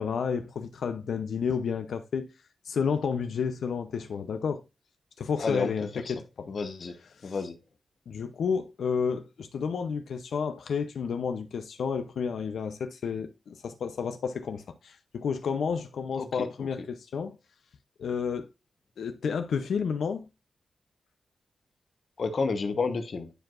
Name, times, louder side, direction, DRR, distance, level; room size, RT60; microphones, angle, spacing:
voice 1, 0.0-2.3 2.6-4.6 5.2-6.5 7.2-7.4 8.1-17.3 18.0-18.5 19.0-20.2, left 6 dB, 85° left, 0.7 m, -31 dB
voice 2, 5.4-5.7 6.0-6.1 6.5-7.0 7.2-7.6 16.2-16.7 22.2-23.3, left 4 dB, 45° left, 1.1 m, -31 dB
10.0 x 4.7 x 2.5 m
wide cardioid pair, 175°, 0 cm